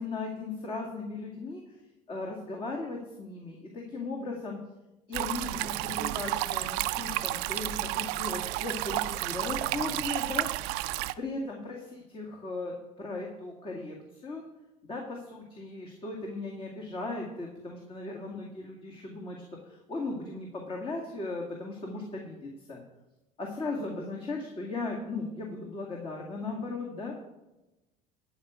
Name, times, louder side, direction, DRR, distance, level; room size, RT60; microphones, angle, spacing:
voice 1, 0.0-1.8 2.1-4.6 5.1-10.5 11.2-14.4 14.9-22.8 23.4-27.2, left 3 dB, 30° left, -1 dB, 2.1 m, -37 dB
sound 1, 5.1-11.1, right 17 dB, 70° right, 0.5 m, -31 dB
12.5 x 5.1 x 8.1 m, 1.0 s
supercardioid pair, 110°, 18 cm